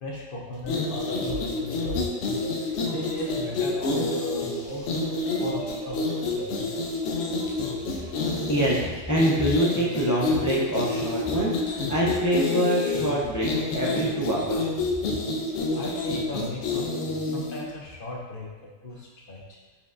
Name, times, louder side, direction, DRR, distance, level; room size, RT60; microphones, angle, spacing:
voice 1, 0.0-2.3 2.9-4.9 5.4-6.8 7.6-8.2 15.8-19.6, left 1 dB, 60° left, -2 dB, 0.8 m, -38 dB
sound 1, 0.6-17.7, left 3 dB, 85° left, 0.9 m, -28 dB
sound 2, 1.1-10.7, right 3 dB, 70° right, 1.0 m, -42 dB
voice 2, 8.3-14.7, right 1 dB, 25° left, -6 dB, 0.3 m, -25 dB
4.4 x 3.5 x 2.5 m, 1.2 s
omnidirectional pair, 1.2 m